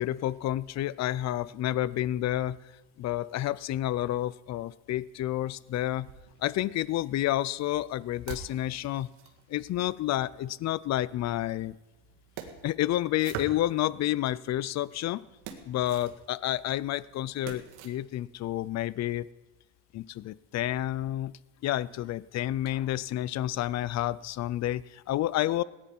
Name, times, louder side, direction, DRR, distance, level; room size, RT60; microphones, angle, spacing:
voice 1, 0.0-2.6 3.0-6.1 6.4-9.1 9.5-11.7 12.6-15.2 15.7-19.3 19.9-21.3 21.6-25.6, left 13 dB, 35° left, 20 dB, 0.4 m, -30 dB
sound 1, 5.7-6.8 7.5-10.5 11.4-14.1 14.6-17.9, right 8 dB, 85° right, 2.0 m, -46 dB
18.0 x 9.9 x 5.4 m, 1.1 s
cardioid pair, 120°, 49 cm